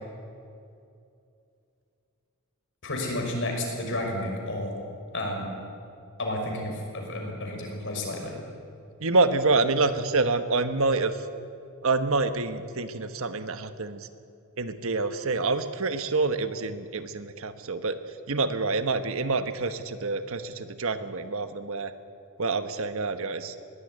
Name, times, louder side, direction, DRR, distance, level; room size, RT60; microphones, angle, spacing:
voice 1, 2.8-4.7 5.1-5.5 6.2-8.4, left 1 dB, 60° left, 1 dB, 5.9 m, -31 dB
voice 2, 9.0-11.2 11.8-14.1 14.6-18.0 18.3-21.9 22.4-23.5, right 3 dB, 65° right, 10 dB, 1.3 m, -27 dB
21.0 x 17.0 x 10.0 m, 2.5 s
head